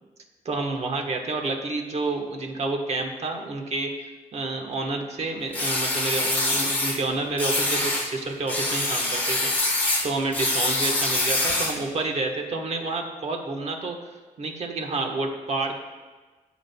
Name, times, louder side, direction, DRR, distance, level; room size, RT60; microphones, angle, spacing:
voice 1, 0.4-9.5 10.0-14.0 14.4-15.8, right 3 dB, 50° right, 3 dB, 1.2 m, -29 dB
sound 1, 5.5-7.0 7.4-8.1 8.5-11.8, left 2 dB, 10° left, 1.2 m, -25 dB
14.5 x 6.2 x 2.2 m, 1.3 s
cardioid pair, 105°, 14 cm